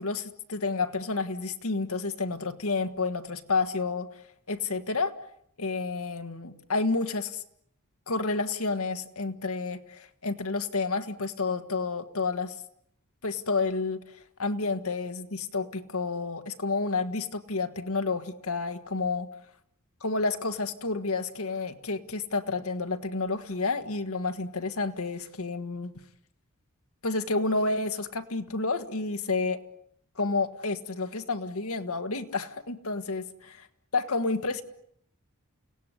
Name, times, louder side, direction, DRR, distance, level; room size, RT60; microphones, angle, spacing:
voice 1, 0.0-4.1 4.5-5.1 5.6-7.4 8.1-12.6 13.2-19.3 20.0-25.9 27.0-29.6 30.2-33.3 33.9-34.6, left 3 dB, 70° left, 8 dB, 1.7 m, -30 dB
29.5 x 17.5 x 9.8 m, 0.72 s
head